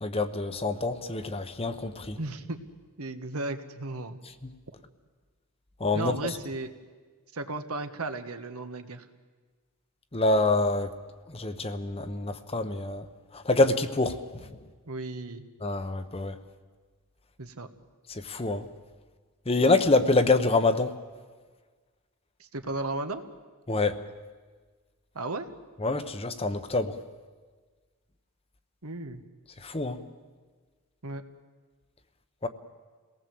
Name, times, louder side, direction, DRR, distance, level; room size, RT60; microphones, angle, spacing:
voice 1, 0.0-2.2 4.4-4.5 5.8-6.4 10.1-11.0 11.3-13.1 13.3-14.6 15.6-16.4 18.1-18.7 19.5-21.0 23.7-24.0 25.8-27.0 29.6-30.0 32.4-32.5, left 2 dB, 25° left, 10 dB, 1.0 m, -26 dB
voice 2, 2.2-2.6 3.0-4.2 5.9-6.7 7.3-9.1 14.9-15.4 17.4-17.7 22.4-23.2 25.1-25.5 28.8-29.2 31.0-31.2, right 2 dB, 75° right, 8 dB, 1.5 m, -35 dB
27.0 x 18.5 x 7.8 m, 1.4 s
head